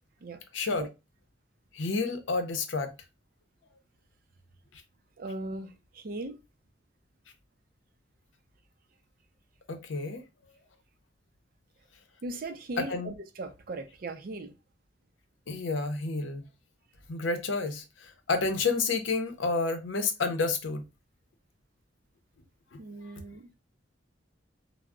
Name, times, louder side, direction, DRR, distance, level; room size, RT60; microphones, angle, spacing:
voice 1, 0.5-0.9 1.7-2.9 9.7-10.2 12.8-13.1 15.5-16.4 17.1-20.8 22.7-22.8, left 3 dB, 90° left, 0.6 m, -30 dB
voice 2, 5.2-6.4 12.2-14.5 22.8-23.5, right 2 dB, 50° right, 0.4 m, -38 dB
2.2 x 2.0 x 3.5 m
head